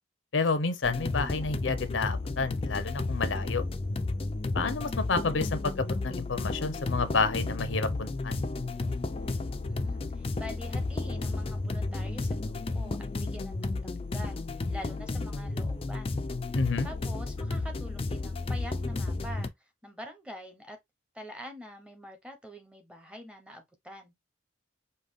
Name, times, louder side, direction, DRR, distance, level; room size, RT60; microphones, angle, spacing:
voice 1, 0.3-3.6 4.5-8.4 16.5-16.9, left 4 dB, 80° left, 0.7 m, -30 dB
sound 1, 0.8-19.5, left 3 dB, 30° left, 0.4 m, -32 dB
voice 2, 9.7-14.4 14.7-16.1 16.8-19.5 19.8-20.8 21.1-24.1, equal, 5° right, 0.7 m, -45 dB
5.2 x 2.3 x 3.5 m
head